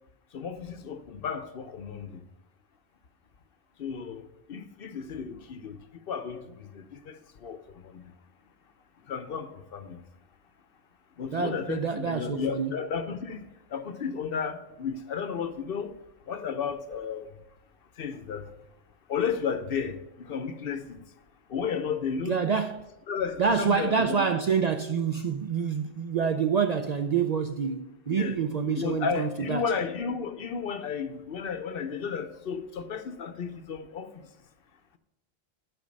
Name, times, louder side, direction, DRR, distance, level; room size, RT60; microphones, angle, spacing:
voice 1, 0.3-2.2 3.8-4.2 4.5-5.8 6.1-8.0 9.1-10.0 11.2-15.9 16.3-17.3 18.0-18.5 19.1-21.0 21.5-22.4 23.1-24.2 28.2-28.4 28.8-34.2, left 6 dB, 60° left, 0.9 m, -33 dB
voice 2, 11.3-12.7 22.3-22.8 23.4-29.7, right 6 dB, 55° right, 0.5 m, -27 dB
10.5 x 5.1 x 5.2 m
omnidirectional pair, 1.1 m